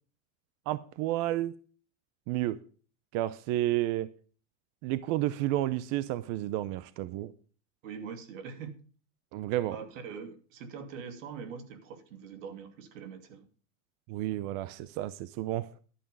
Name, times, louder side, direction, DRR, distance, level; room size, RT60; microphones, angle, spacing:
voice 1, 0.7-1.5 2.3-2.6 3.1-4.1 4.8-7.3 9.3-9.8 14.1-15.7, right 15 dB, 40° right, 16 dB, 0.6 m, -31 dB
voice 2, 7.8-8.7 9.7-13.4, right 6 dB, 80° right, 8 dB, 2.8 m, -43 dB
11.0 x 9.0 x 5.4 m, 0.39 s
supercardioid pair, 160°, 38 cm